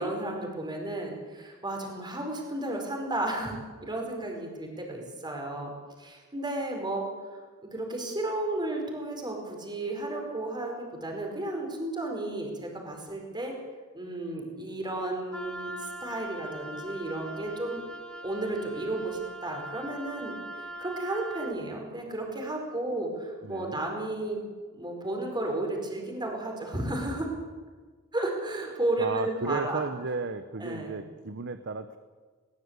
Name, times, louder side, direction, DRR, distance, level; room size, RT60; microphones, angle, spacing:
voice 1, 0.0-5.7 6.0-7.1 7.6-13.5 13.9-17.8 18.2-20.4 20.8-24.4 24.7-27.3 28.1-29.8 30.6-30.9, right 2 dB, 20° right, 2 dB, 4.6 m, -33 dB
Wind instrument woodwind instrument, 15.3-21.6, right 1 dB, 5° left, 1.5 m, -41 dB
voice 2, 23.4-23.8 29.0-32.0, right 4 dB, 55° right, 10 dB, 0.9 m, -34 dB
20.5 x 18.5 x 8.1 m, 1.5 s
head